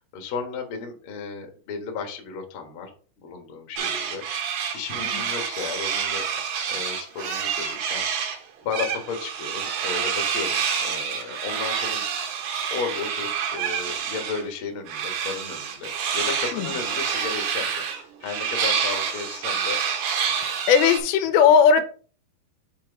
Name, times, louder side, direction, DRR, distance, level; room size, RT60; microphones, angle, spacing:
voice 1, 0.0-2.9 3.2-6.4 6.6-8.3 8.6-12.0 12.7-17.8 18.2-19.8 20.1-20.6, left 5 dB, 55° left, 3 dB, 1.5 m, -34 dB
sound 1, 3.8-8.4 8.7-14.4 14.9-21.0, right 7 dB, 80° right, 3.2 m, -28 dB
voice 2, 20.7-21.8, left 7 dB, 90° left, 9 dB, 2.6 m, -17 dB
5.9 x 4.8 x 4.6 m, 0.40 s
omnidirectional pair, 4.4 m